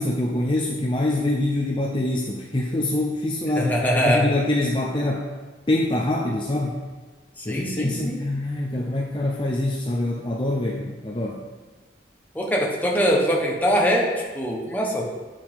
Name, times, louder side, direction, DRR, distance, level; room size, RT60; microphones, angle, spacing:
voice 1, 0.0-5.3 5.7-6.8 7.4-11.4, left 1 dB, 30° left, -2 dB, 0.7 m, -25 dB
voice 2, 3.6-4.3 7.4-8.2 12.3-15.1, equal, 10° left, -2 dB, 1.2 m, -23 dB
9.9 x 7.4 x 3.7 m, 1.3 s
head